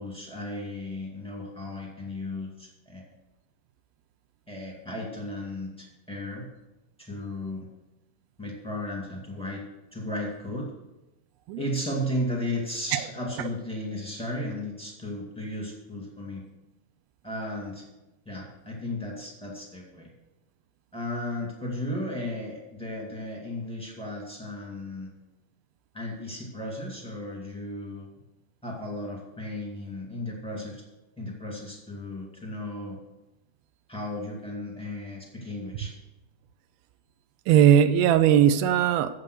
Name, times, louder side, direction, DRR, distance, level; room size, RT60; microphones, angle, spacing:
voice 1, 0.0-3.0 4.5-6.4 7.0-7.7 8.4-9.6 9.9-10.7 11.6-16.4 17.2-17.8 18.2-20.1 20.9-25.1 25.9-28.1 28.6-30.8 31.2-33.0 33.9-35.9, left 1 dB, 5° left, -3 dB, 0.8 m, -35 dB
voice 2, 37.5-39.1, right 10 dB, 85° right, 11 dB, 2.4 m, -19 dB
9.0 x 7.5 x 6.4 m, 1.0 s
omnidirectional pair, 4.4 m